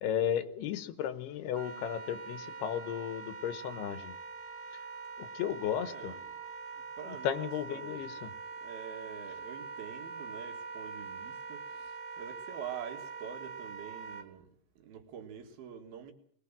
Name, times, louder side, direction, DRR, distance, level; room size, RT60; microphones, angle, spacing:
voice 1, 0.0-4.1 5.2-6.1 7.1-8.3, left 9 dB, 85° left, 3.1 m, -34 dB
Wind instrument woodwind instrument, 1.5-14.3, right 5 dB, 50° right, 2.4 m, -44 dB
voice 2, 5.7-6.4 7.0-8.2 8.6-14.5 14.8-16.1, right 8 dB, 70° right, 3.7 m, -46 dB
21.5 x 19.0 x 7.5 m
omnidirectional pair, 4.6 m